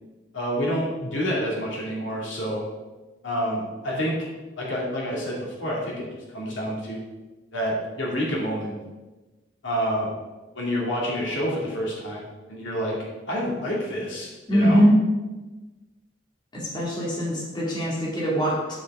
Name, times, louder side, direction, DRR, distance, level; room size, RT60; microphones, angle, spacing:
voice 1, 0.3-2.6 3.2-4.2 4.6-6.1 6.3-7.0 7.5-8.8 9.6-10.1 10.5-13.0 13.3-14.8, equal, 80° left, -4 dB, 2.4 m, -28 dB
voice 2, 14.5-15.0 16.5-18.8, equal, 25° left, -6 dB, 2.3 m, -22 dB
9.4 x 7.0 x 3.7 m, 1.2 s
head